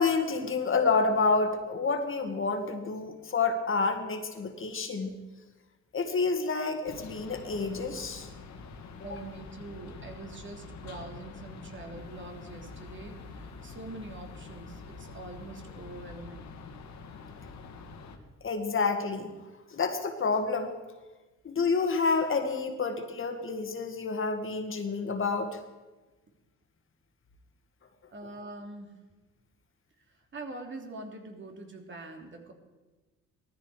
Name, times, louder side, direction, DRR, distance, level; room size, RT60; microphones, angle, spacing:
voice 1, 0.0-5.1 5.9-8.3 9.1-9.2 18.4-19.3 19.7-20.7 21.4-25.6, left 4 dB, 45° left, 5 dB, 2.0 m, -29 dB
sound 1, 6.9-18.2, left 4 dB, 65° left, 2.2 m, -46 dB
voice 2, 9.0-16.5 28.1-29.0 30.3-32.5, right 2 dB, 40° right, 3 dB, 3.1 m, -44 dB
18.5 x 14.0 x 5.0 m, 1.2 s
cardioid pair, 90°, 30 cm